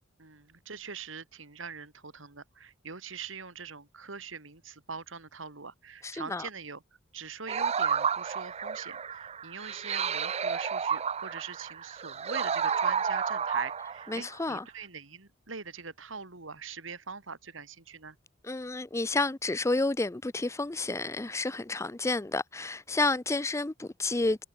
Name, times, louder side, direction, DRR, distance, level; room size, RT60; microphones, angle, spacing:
voice 1, 0.2-6.8 7.1-18.2, right 5 dB, 85° right, 2.6 m, -43 dB
voice 2, 6.0-6.5 14.1-14.6 18.4-24.4, left 2 dB, 15° left, 0.5 m, -30 dB
sound 1, 7.5-14.3, right 7 dB, 35° right, 0.6 m, -31 dB
head